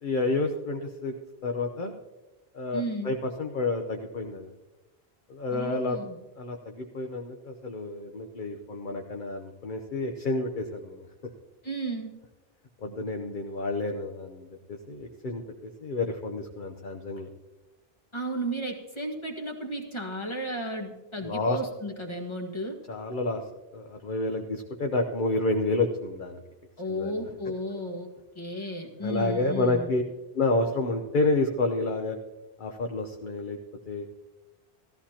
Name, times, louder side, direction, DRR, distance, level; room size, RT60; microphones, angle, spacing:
voice 1, 0.0-1.1 1.4-1.9 2.5-4.5 5.3-6.0 6.4-11.1 12.8-17.3 21.2-21.6 22.9-23.4 23.7-26.4 26.9-27.3 29.0-30.0 30.3-32.2 32.6-33.6 33.9-34.1, left 2 dB, 50° left, 3 dB, 1.0 m, -29 dB
voice 2, 2.7-3.1 5.5-6.2 11.6-12.1 18.1-22.8 26.8-28.1 28.3-29.9, right 1 dB, 25° left, 1 dB, 1.7 m, -34 dB
16.0 x 14.0 x 2.9 m, 1.1 s
omnidirectional pair, 1.1 m